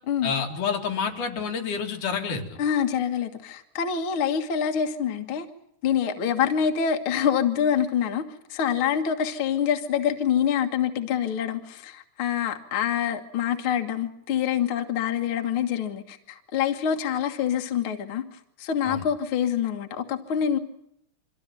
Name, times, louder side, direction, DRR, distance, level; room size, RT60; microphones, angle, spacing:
voice 1, 0.2-2.5 18.8-19.0, left 6 dB, 85° left, 3.9 m, -28 dB
voice 2, 2.6-5.5 5.8-8.2 8.5-20.6, left 8 dB, 50° left, 2.0 m, -26 dB
24.5 x 15.0 x 9.1 m
omnidirectional pair, 3.5 m